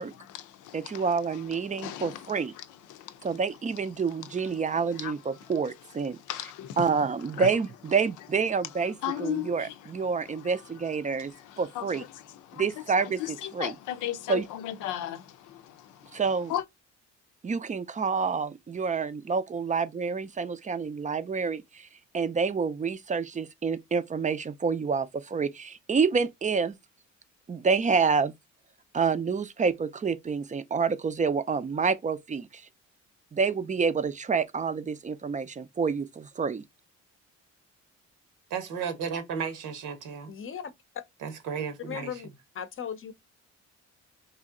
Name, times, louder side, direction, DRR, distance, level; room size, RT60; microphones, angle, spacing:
voice 1, 0.0-16.7, left 12 dB, 85° left, 0.6 m, -39 dB
voice 2, 0.7-2.5 3.2-5.2 5.5-6.2 6.8-8.9 9.2-9.7 9.9-12.0 12.6-13.2 13.6-13.7 14.3-14.4 16.1-16.5 17.4-21.9 22.1-26.8 27.5-28.3 28.9-32.6 33.3-36.6, right 5 dB, 25° right, 0.4 m, -28 dB
voice 3, 38.5-40.3 41.2-42.2, right 6 dB, 85° right, 1.1 m, -34 dB
voice 4, 40.3-40.7 41.9-42.3 42.5-43.1, left 8 dB, 45° left, 0.7 m, -37 dB
3.1 x 2.7 x 3.7 m
cardioid pair, 90°, 30 cm